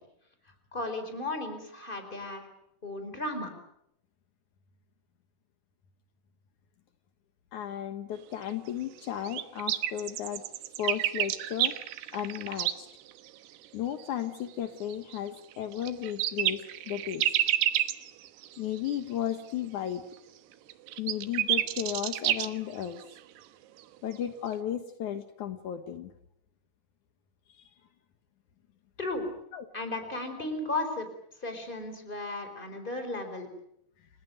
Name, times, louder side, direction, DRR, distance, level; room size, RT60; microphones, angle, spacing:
voice 1, 0.7-2.4 2.8-3.5 29.0-29.2 29.7-31.1 31.4-33.5, left 2 dB, 10° left, 7 dB, 4.1 m, -35 dB
voice 2, 7.5-10.4 10.8-11.7 12.1-12.9 13.7-17.2 18.6-20.0 21.0-23.0 24.0-26.1 27.5-27.6 29.5-29.7, left 10 dB, 85° left, 8 dB, 1.7 m, -34 dB
sound 1, 8.1-8.2 8.5-8.6 9.0-9.1 9.2-12.8 13.1-13.3 14.0-14.1 14.9-19.0 19.3-19.4 20.7-23.4 23.8-23.9 24.5-24.6, right 12 dB, 70° right, 2.8 m, -30 dB
30.0 x 18.5 x 9.3 m, 0.78 s
omnidirectional pair, 5.7 m